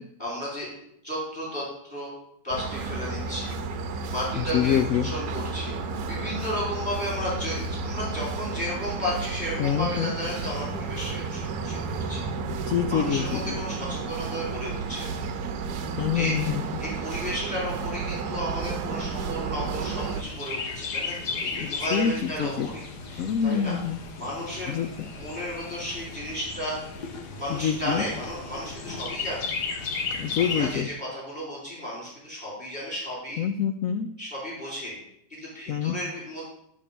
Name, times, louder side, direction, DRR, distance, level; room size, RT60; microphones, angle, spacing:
voice 1, 0.2-0.7 1.0-1.6 1.9-2.1 2.4-3.5 4.1-5.7 6.1-12.2 12.9-15.2 16.1-16.5 16.8-23.8 24.2-26.8 27.4-29.5 30.4-33.4 34.2-34.9 35.4-36.5, equal, 25° left, -7 dB, 3.4 m, -33 dB
sound 1, 2.5-20.2, right 4 dB, 65° right, 1.2 m, -32 dB
voice 2, 4.4-5.1 9.6-10.1 12.5-13.5 16.0-16.6 21.6-22.7 23.2-24.0 24.7-24.9 27.5-28.0 30.2-30.9 33.4-34.1 35.7-36.0, left 8 dB, 85° left, 8 dB, 0.7 m, -26 dB
Chirp tweet, 20.0-30.8, left 4 dB, 65° left, 1.5 m, -35 dB
10.5 x 3.7 x 6.7 m, 0.74 s
omnidirectional pair, 2.0 m